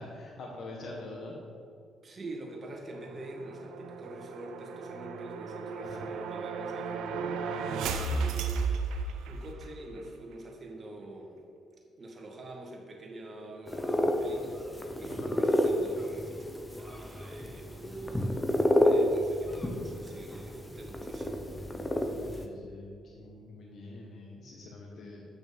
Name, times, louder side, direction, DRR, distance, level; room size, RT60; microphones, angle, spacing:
voice 1, 0.0-1.4 5.8-6.1 15.1-15.3 22.2-25.3, left 2 dB, 60° left, -1 dB, 1.4 m, -44 dB
voice 2, 2.0-11.4 12.0-21.5, right 1 dB, 35° right, 0 dB, 1.9 m, -45 dB
sound 1, 2.9-9.7, right 4 dB, 90° right, 0.7 m, -35 dB
sound 2, 13.7-22.5, left 1 dB, 15° left, 0.9 m, -30 dB
8.8 x 6.1 x 5.3 m, 2.4 s
cardioid pair, 90°, 0 cm